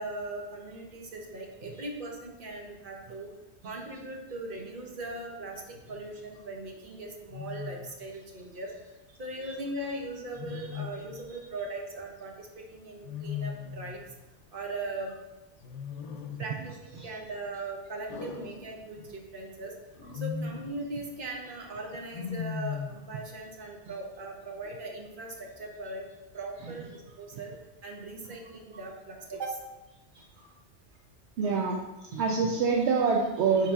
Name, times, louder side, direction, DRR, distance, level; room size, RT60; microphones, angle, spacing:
voice 1, 0.0-3.3 3.6-8.7 9.2-14.0 14.5-15.1 16.4-19.7 20.1-26.0 26.3-27.5 27.8-29.6, right 2 dB, 50° right, 0 dB, 1.2 m, -39 dB
Wild animals, 5.7-6.1 7.3-8.0 10.4-11.3 13.0-14.1 15.6-16.6 18.1-19.2 19.9-20.8 22.1-23.1, left 7 dB, 85° left, 1.0 m, -38 dB
voice 2, 31.4-31.8 32.1-33.7, right 5 dB, 75° right, 1 dB, 0.9 m, -25 dB
9.6 x 4.1 x 2.4 m, 1.0 s
omnidirectional pair, 1.2 m